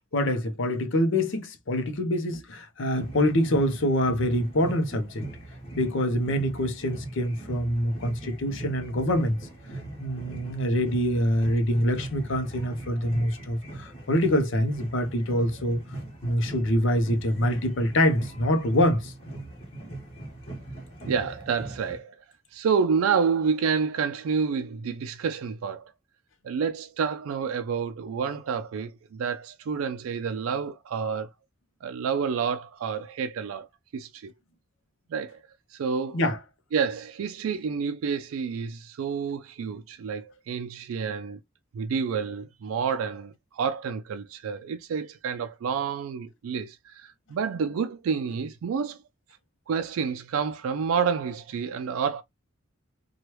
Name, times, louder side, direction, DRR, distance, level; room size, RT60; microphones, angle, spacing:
voice 1, 0.1-5.3 5.8-9.4 10.0-15.8 16.2-19.1 36.1-36.4, left 1 dB, 65° left, 0.7 m, -25 dB
sound 1, 2.9-22.0, right 2 dB, 30° left, 1.3 m, -40 dB
voice 2, 21.1-22.1 22.5-25.9 26.4-31.3 31.8-33.7 33.9-34.3 35.1-35.4 35.7-36.2 36.7-41.4 41.7-49.0 49.7-52.2, right 6 dB, 90° right, 0.3 m, -29 dB
3.0 x 2.3 x 3.0 m
head